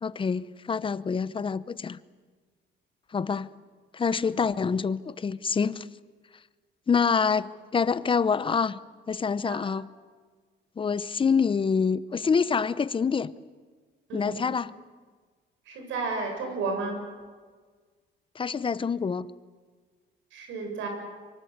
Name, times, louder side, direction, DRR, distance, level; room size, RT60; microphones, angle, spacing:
voice 1, 0.0-2.0 3.1-3.5 3.9-5.9 6.9-8.8 9.1-9.9 10.8-13.3 14.1-14.7 18.3-19.3, left 5 dB, 25° left, 0.8 m, -26 dB
voice 2, 15.7-17.0 20.3-20.9, right 3 dB, 85° right, 7.5 m, -32 dB
24.5 x 24.0 x 8.1 m
cardioid pair, 120°, 19 cm